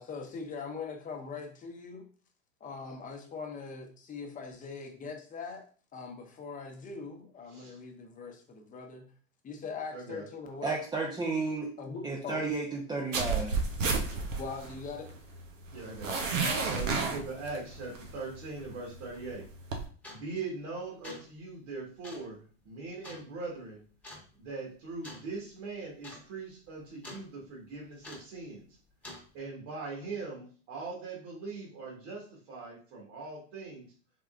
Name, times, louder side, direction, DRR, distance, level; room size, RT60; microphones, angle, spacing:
voice 1, 0.0-2.1 2.6-5.6 5.9-9.1 9.4-10.7 11.8-12.4 14.4-15.1 16.4-16.9, left 4 dB, 20° left, 3 dB, 0.8 m, -41 dB
voice 2, 9.9-10.3 15.7-16.2 16.7-19.4 20.1-23.8 24.3-28.6 29.3-33.8, right 3 dB, 55° right, -3 dB, 1.5 m, -41 dB
voice 3, 10.6-11.7 12.0-13.6, right 3 dB, 10° right, -2 dB, 0.6 m, -32 dB
sound 1, 13.1-19.9, right 4 dB, 90° right, 0.9 m, -32 dB
sound 2, 19.1-19.3 20.0-20.4 20.9-21.3 22.0-22.3 23.0-23.3 24.0-24.3 25.0-25.3 25.6-25.7 26.0-26.2 26.5-27.2 28.0-28.4 29.0-29.3, left 1 dB, 5° left, 1.2 m, -46 dB
3.7 x 3.2 x 2.4 m, 0.41 s
hypercardioid pair, 110°, 37 cm